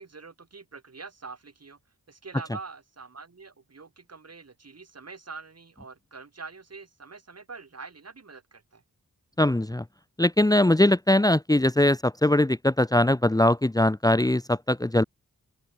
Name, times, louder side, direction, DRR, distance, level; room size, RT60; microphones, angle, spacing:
voice 1, 0.0-1.8 2.1-8.8, right 4 dB, 45° right, 5.8 m, -44 dB
voice 2, 9.4-9.8 10.2-15.0, left 1 dB, 10° left, 1.2 m, -21 dB
open air
wide cardioid pair, 140°, 35 cm